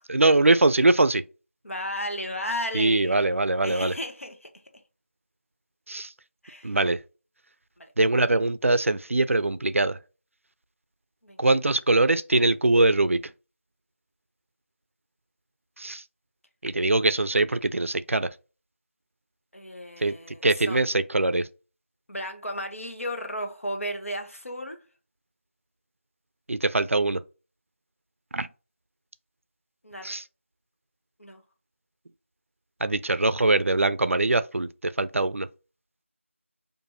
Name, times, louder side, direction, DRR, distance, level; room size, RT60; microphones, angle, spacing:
voice 1, 0.1-1.2 2.7-3.9 5.9-6.1 6.6-7.0 8.0-10.0 11.4-13.3 15.8-16.0 16.6-18.3 20.0-21.5 26.5-27.2 28.3-28.5 30.0-30.2 32.8-35.5, right 2 dB, 75° right, 0.4 m, -22 dB
voice 2, 1.6-3.3 3.6-4.5 6.4-6.8 7.8-7.9 11.2-11.4 19.5-20.8 22.1-24.8 29.8-30.1 31.2-31.4, equal, 80° left, 1.0 m, -34 dB
4.6 x 2.6 x 2.6 m
figure-of-eight pair, 175°, 7 cm